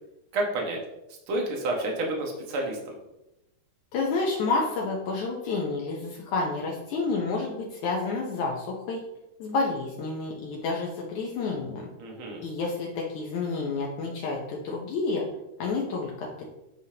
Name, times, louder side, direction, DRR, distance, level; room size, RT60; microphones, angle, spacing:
voice 1, 0.3-0.8 1.3-3.0 12.0-12.4, right 2 dB, 50° right, 0 dB, 1.8 m, -29 dB
voice 2, 3.9-9.0 9.4-11.9 12.4-15.2 15.6-16.5, left 3 dB, 70° left, -2 dB, 2.2 m, -29 dB
9.8 x 5.5 x 2.8 m, 0.91 s
omnidirectional pair, 3.7 m